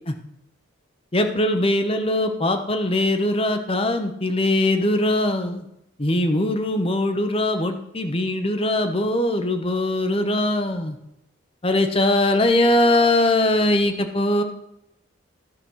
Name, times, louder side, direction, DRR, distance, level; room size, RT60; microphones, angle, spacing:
voice 1, 1.1-5.6 6.0-11.0 11.6-14.4, left 1 dB, 25° left, 6 dB, 0.9 m, -21 dB
14.0 x 5.3 x 6.2 m, 0.81 s
head